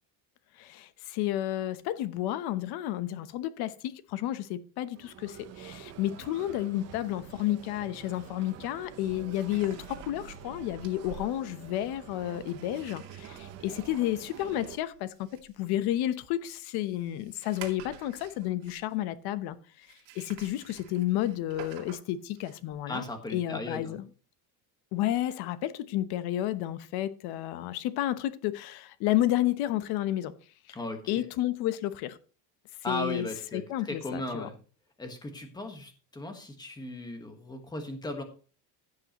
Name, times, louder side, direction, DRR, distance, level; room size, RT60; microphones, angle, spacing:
voice 1, 0.6-19.6 20.1-24.0 24.9-30.3 31.1-32.2 32.9-33.3 33.5-34.5, left 13 dB, 60° left, 1.0 m, -31 dB
sound 1, 4.9-14.8, right 9 dB, 35° right, 0.9 m, -48 dB
sound 2, 7.2-7.3 8.7-19.1 19.8-22.8, right 8 dB, 65° right, 2.5 m, -50 dB
voice 2, 22.9-24.0 30.7-31.3 32.8-34.6 35.0-38.2, left 1 dB, 10° left, 1.4 m, -37 dB
15.5 x 7.8 x 3.0 m
cardioid pair, 175°, 44 cm